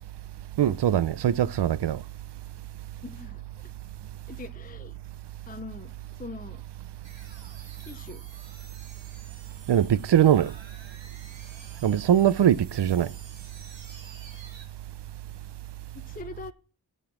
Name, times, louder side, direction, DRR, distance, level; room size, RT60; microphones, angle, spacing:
voice 1, 0.6-2.0 9.7-10.5 11.8-13.1, right 10 dB, 65° right, 0.6 m, -21 dB
voice 2, 3.0-3.4 4.3-5.0 5.5-5.9 6.2-6.6 7.8-8.2 16.0-16.5, left 3 dB, 20° left, 0.6 m, -41 dB
sound 1, 7.0-14.7, right 4 dB, 85° right, 3.2 m, -51 dB
15.0 x 5.4 x 6.0 m
wide cardioid pair, 140°, 44 cm